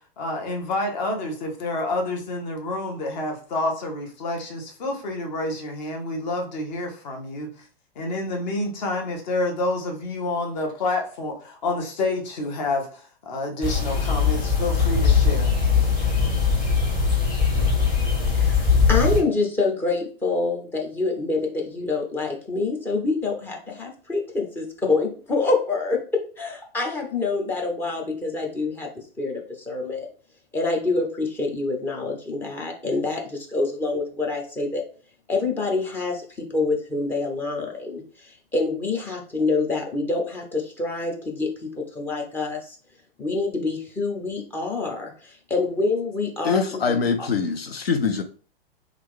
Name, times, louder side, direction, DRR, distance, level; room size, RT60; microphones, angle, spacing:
voice 1, 0.2-7.5 8.0-15.5, left 2 dB, 45° left, 1.0 m, -28 dB
sound 1, 13.6-19.2, left 5 dB, 25° left, 1.5 m, -20 dB
voice 2, 18.3-28.9 29.2-30.1 30.5-34.8 35.3-42.8 43.2-47.0, left 3 dB, 5° left, 0.4 m, -26 dB
voice 3, 46.4-48.2, left 5 dB, 75° left, 0.5 m, -23 dB
2.9 x 2.4 x 3.5 m
figure-of-eight pair, 105°, 30 cm